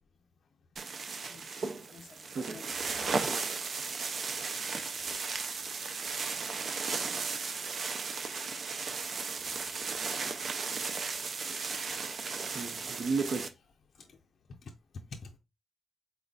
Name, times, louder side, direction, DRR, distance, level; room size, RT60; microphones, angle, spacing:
sound 1, 0.8-13.5, right 4 dB, 50° right, 0.4 m, -35 dB
voice 1, 1.3-3.3 3.7-3.8 4.8-6.5 6.9-7.0 8.4-8.9 11.8-13.7 13.9-14.2 14.6-15.4, left 4 dB, 50° left, 0.5 m, -53 dB
4.2 x 3.8 x 2.3 m
wide cardioid pair, 145°, 0 cm